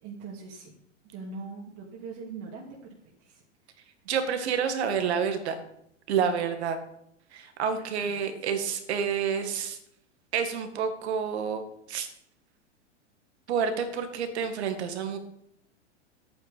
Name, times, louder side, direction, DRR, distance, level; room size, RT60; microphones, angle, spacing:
voice 1, 0.0-0.7 1.1-2.8 3.2-3.4 8.0-8.2, right 4 dB, 45° right, -3 dB, 2.7 m, -41 dB
voice 2, 4.1-5.6 6.1-6.8 7.3-9.8 10.3-11.6 11.9-12.1 13.5-15.2, right 7 dB, 65° right, 7 dB, 2.1 m, -28 dB
11.5 x 8.9 x 5.4 m, 0.76 s
hypercardioid pair, 100°, 36 cm